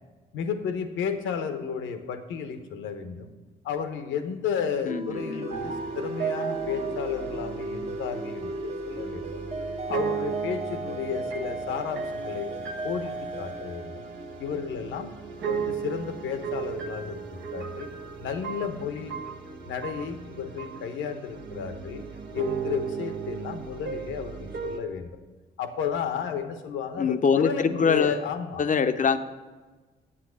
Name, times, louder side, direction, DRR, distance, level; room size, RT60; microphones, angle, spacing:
voice 1, 0.3-3.3 3.6-9.4 9.9-12.5 12.8-14.1 14.4-15.1 15.4-17.9 18.2-19.2 19.7-22.0 22.3-25.1 25.6-28.6, left 7 dB, 70° left, 8 dB, 0.9 m, -33 dB
voice 2, 4.8-5.5 27.0-28.2 28.6-29.2, left 6 dB, 40° left, 10 dB, 0.7 m, -24 dB
sound 1, 4.9-15.2, right 2 dB, 30° right, 0.9 m, -36 dB
sound 2, 5.5-24.8, right 7 dB, 65° right, 1.1 m, -36 dB
8.7 x 7.8 x 6.3 m, 1.3 s
hypercardioid pair, 45°, 20 cm